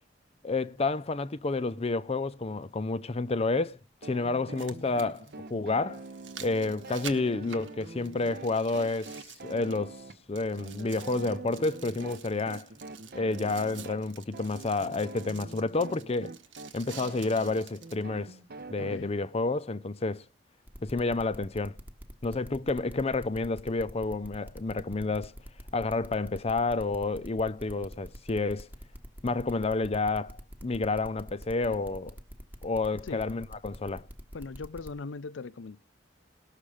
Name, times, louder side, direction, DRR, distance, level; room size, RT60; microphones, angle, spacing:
voice 1, 0.4-6.0 6.4-9.2 9.4-10.0 10.3-12.7 13.1-16.3 16.7-18.4 18.7-20.2 20.8-21.8 22.2-25.3 25.7-28.7 29.2-32.2 32.6-34.1, left 3 dB, 35° left, 0.6 m, -30 dB
sound 1, 1.1-1.2 3.1-3.2 4.3-10.0 10.3-18.0 18.6-18.7, right 8 dB, 80° right, 1.3 m, -49 dB
sound 2, 4.0-19.0, right 3 dB, 55° right, 0.9 m, -45 dB
voice 2, 18.8-19.1 32.9-33.4 34.3-35.8, left 4 dB, 90° left, 0.6 m, -40 dB
sound 3, 20.7-34.9, equal, 10° right, 1.2 m, -44 dB
18.5 x 6.6 x 4.9 m
head